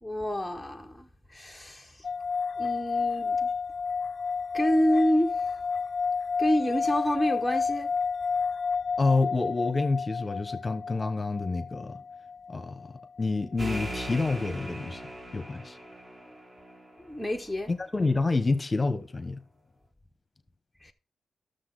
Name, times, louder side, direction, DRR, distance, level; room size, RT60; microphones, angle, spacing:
voice 1, 0.0-2.0 2.6-3.5 4.5-5.4 6.4-7.9 17.0-17.7 20.8-20.9, equal, ahead, 0.8 m, -28 dB
sound 1, 2.0-13.4, left 5 dB, 45° left, 0.5 m, -31 dB
voice 2, 9.0-12.0 12.5-15.0 15.3-15.8 17.7-19.4, left 3 dB, 25° left, 0.9 m, -28 dB
sound 2, 13.6-17.1, equal, 25° right, 1.4 m, -39 dB
12.5 x 6.7 x 3.9 m
wide cardioid pair, 115°, 0 cm